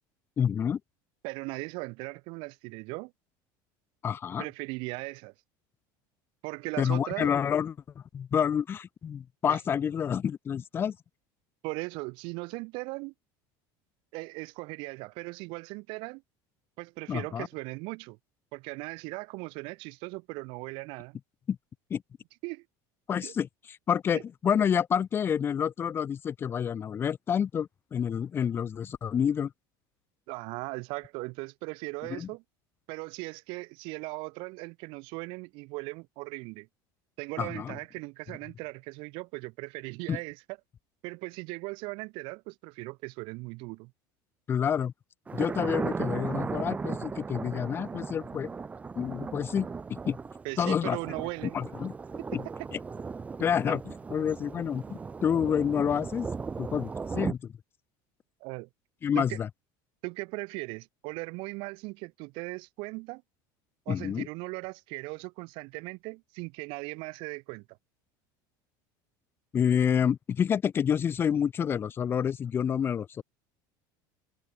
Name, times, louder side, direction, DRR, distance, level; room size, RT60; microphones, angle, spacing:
voice 1, 0.4-0.8 4.0-4.4 6.8-11.0 17.1-17.5 21.5-21.6 21.9-22.0 23.1-23.5 23.9-29.5 32.1-32.3 37.4-37.7 40.1-40.2 44.5-44.9 45.3-48.5 49.0-50.2 50.6-51.0 51.5-51.9 52.3-52.4 53.4-56.3 56.6-57.5 59.0-59.5 63.9-64.3 69.5-73.2, left 8 dB, 20° left, 1.8 m, -28 dB
voice 2, 1.2-3.1 4.4-5.3 6.4-7.3 9.5-9.6 11.6-13.1 14.1-16.2 16.8-18.2 18.5-21.2 22.4-22.6 23.2-23.3 24.1-24.2 30.3-32.4 32.9-36.7 37.2-40.4 41.0-43.9 50.4-51.6 53.7-53.8 58.4-58.7 59.1-59.4 60.0-63.2 63.9-67.6, right 27 dB, 55° right, 6.4 m, -38 dB
Thunder, 45.3-57.3, right 5 dB, 15° right, 3.4 m, -37 dB
cardioid pair, 170°, 10 cm